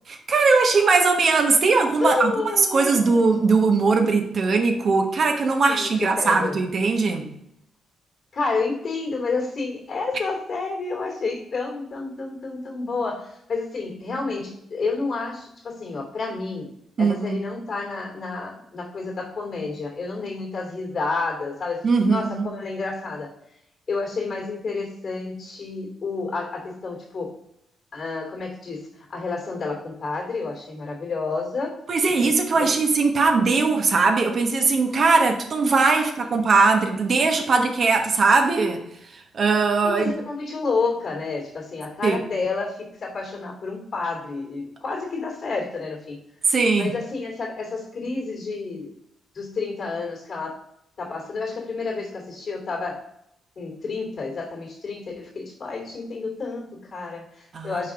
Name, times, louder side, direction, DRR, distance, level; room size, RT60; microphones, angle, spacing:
voice 1, 0.1-2.3 2.6-7.3 17.0-17.4 21.8-22.5 31.9-38.8 39.1-40.1 42.0-42.2 46.5-46.9 57.5-57.8, right 4 dB, 55° right, 4 dB, 1.1 m, -20 dB
voice 2, 2.0-3.2 5.7-6.6 8.3-16.7 17.0-23.3 23.9-27.4 27.9-31.8 32.2-32.7 36.0-36.1 39.8-46.2 46.7-48.9 49.3-50.6 51.0-53.0 53.6-57.9, left 4 dB, 55° left, 0 dB, 2.7 m, -30 dB
5.5 x 4.4 x 5.0 m, 0.76 s
supercardioid pair, 60°, 0 cm